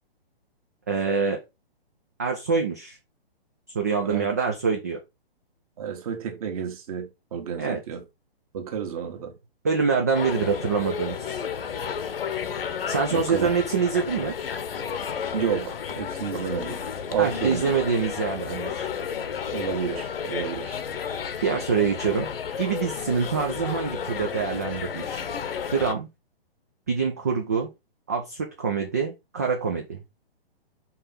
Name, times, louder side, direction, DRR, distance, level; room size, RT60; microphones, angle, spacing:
voice 1, 0.9-1.4 2.2-3.0 3.7-5.0 7.6-7.8 9.6-11.4 12.9-14.3 16.3-16.5 17.2-18.9 21.4-22.3 22.6-25.2 25.7-26.1 26.9-27.7 28.1-30.0, right 5 dB, 15° right, 0.4 m, -25 dB
voice 2, 5.8-8.0 8.5-9.3 13.1-13.5 15.3-16.8 17.1-17.7 19.5-20.7, right 8 dB, 35° right, 1.4 m, -30 dB
sound 1, 10.1-26.0, left 7 dB, 65° left, 1.0 m, -32 dB
5.5 x 3.3 x 5.5 m
hypercardioid pair, 160°, 30 cm